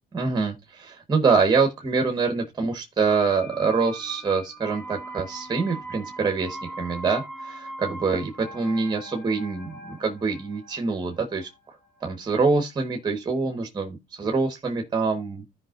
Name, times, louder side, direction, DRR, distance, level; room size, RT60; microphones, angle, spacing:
voice 1, 0.1-11.5 12.0-15.4, right 4 dB, 25° right, 1.3 m, -25 dB
sound 1, 3.0-12.8 13.1-13.2, right 2 dB, 15° left, 3.9 m, -41 dB
14.5 x 5.2 x 2.5 m
cardioid pair, 110°, 17 cm